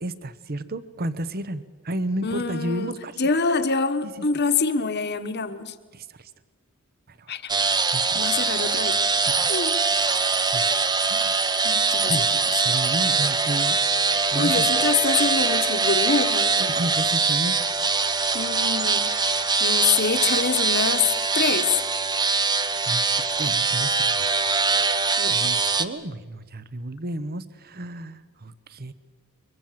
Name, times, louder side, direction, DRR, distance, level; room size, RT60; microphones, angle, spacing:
voice 1, 0.0-3.2 5.9-6.3 7.1-7.3 7.9-8.2 9.2-9.5 10.5-10.7 11.1-11.4 12.1-12.3 12.6-13.8 14.3-14.7 16.6-17.6 22.9-23.1 23.4-24.4 25.3-28.9, right 1 dB, 45° right, 15 dB, 1.0 m, -32 dB
voice 2, 2.2-5.7 7.3-7.5 8.1-9.0 9.5-9.7 11.6-12.1 14.3-16.6 18.3-21.1 21.3-21.8 25.2-25.4, left 5 dB, 50° left, 9 dB, 1.4 m, -25 dB
sound 1, 7.5-25.8, right 4 dB, 20° right, 0.9 m, -23 dB
23.5 x 22.0 x 7.5 m, 1.4 s
head